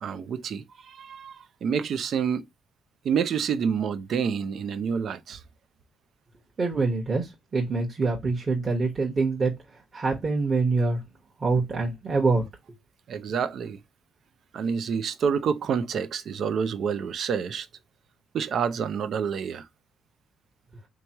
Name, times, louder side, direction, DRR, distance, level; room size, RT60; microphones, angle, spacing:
voice 1, 0.0-2.4 3.0-5.4 13.1-13.8 14.5-17.7 18.3-19.7, right 7 dB, 65° right, 0.5 m, -28 dB
voice 2, 6.6-7.3 7.5-9.5 9.9-11.0 11.4-12.4, right 3 dB, 40° right, 1.2 m, -25 dB
3.5 x 3.0 x 2.9 m
cardioid pair, 90°, 0 cm